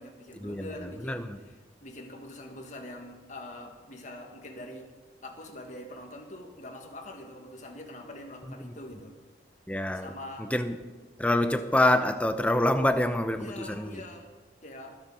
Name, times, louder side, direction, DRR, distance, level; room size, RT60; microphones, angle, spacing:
voice 1, 0.0-4.9 5.2-9.1 9.9-10.5 13.3-14.3 14.6-15.0, left 1 dB, 40° left, 2 dB, 1.8 m, -44 dB
voice 2, 1.0-1.4 9.7-10.1 10.4-10.8 11.2-14.0, left 1 dB, 5° left, 9 dB, 0.6 m, -26 dB
20.5 x 7.3 x 5.5 m, 1.4 s
head